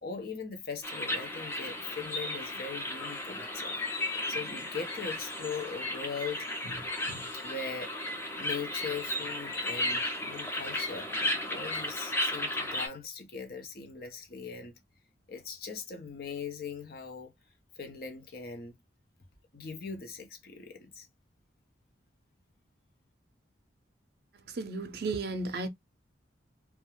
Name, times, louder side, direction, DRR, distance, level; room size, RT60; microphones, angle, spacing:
voice 1, 0.0-7.9 8.4-11.1 11.5-14.8 15.3-17.3 17.8-18.7 19.5-21.1, left 5 dB, 55° left, 0.6 m, -40 dB
sound 1, 0.8-12.9, left 1 dB, 15° left, 0.4 m, -34 dB
voice 2, 24.5-25.7, right 3 dB, 55° right, 0.5 m, -33 dB
2.3 x 2.1 x 3.0 m
head